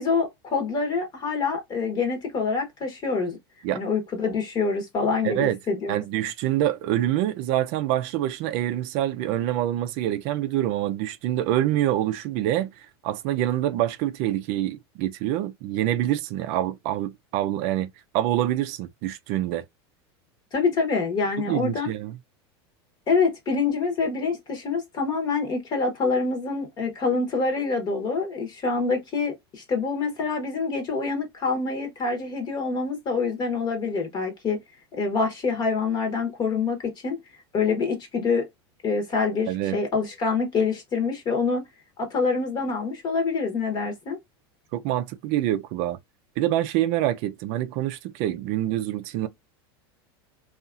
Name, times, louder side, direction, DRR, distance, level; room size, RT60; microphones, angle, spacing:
voice 1, 0.0-3.4 3.7-6.0 20.5-21.9 23.1-34.6 35.0-37.2 37.5-38.4 38.8-41.6 42.0-44.2, left 4 dB, 35° left, 0.9 m, -26 dB
voice 2, 5.2-5.6 5.9-19.6 21.5-22.2 39.5-39.8 44.7-46.0 46.4-49.3, right 13 dB, 55° right, 0.4 m, -26 dB
2.7 x 2.4 x 2.4 m
supercardioid pair, 115°, 13 cm